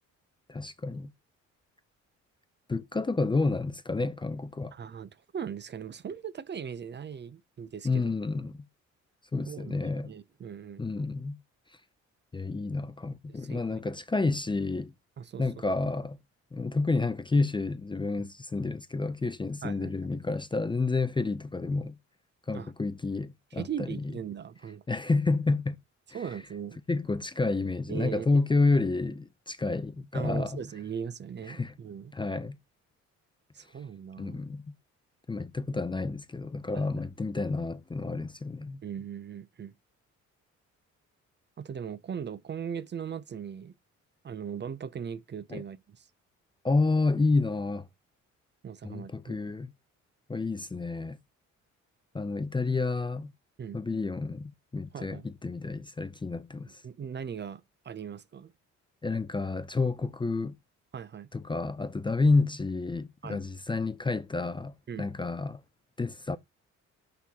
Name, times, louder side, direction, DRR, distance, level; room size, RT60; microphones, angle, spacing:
voice 1, 0.5-1.1 2.7-4.7 7.8-8.6 9.3-10.1 10.8-11.4 12.3-14.9 15.4-16.2 16.5-22.0 22.5-23.9 24.9-25.8 26.9-30.6 31.5-31.7 32.1-32.6 34.2-34.6 35.3-38.8 45.5-45.6 46.6-47.9 48.8-49.7 50.3-51.2 52.1-53.3 53.7-56.8 59.0-60.6 61.3-64.7 65.0-65.6 66.0-66.4, left 3 dB, 15° left, 0.5 m, -29 dB
voice 2, 4.7-8.1 9.5-10.8 13.3-13.8 15.2-15.6 18.2-18.3 19.6-19.9 22.5-22.7 23.5-24.8 26.1-26.8 27.9-28.3 30.1-32.1 33.5-34.4 36.7-36.9 38.8-39.7 41.6-43.7 44.2-46.1 48.6-49.4 53.6-53.8 54.9-55.3 56.8-58.5 60.9-61.3 63.2-63.4 64.9-65.1, right 8 dB, 35° right, 0.6 m, -39 dB
11.0 x 3.9 x 2.8 m
cardioid pair, 90°, 30 cm